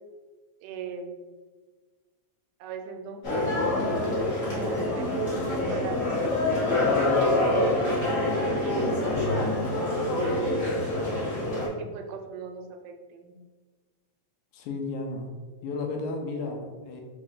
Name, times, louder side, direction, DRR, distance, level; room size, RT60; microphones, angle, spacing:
voice 1, 0.6-1.2 2.6-3.2 3.6-6.4 7.0-7.8 8.4-9.0 9.9-10.7 11.1-13.3, right 6 dB, 85° right, 5 dB, 1.9 m, -38 dB
sound 1, 3.2-11.7, left 2 dB, 45° left, 1.1 m, -26 dB
voice 2, 14.5-15.3 15.6-17.0, left 3 dB, 80° left, 2 dB, 2.0 m, -33 dB
5.0 x 2.5 x 3.7 m, 1.4 s
omnidirectional pair, 3.4 m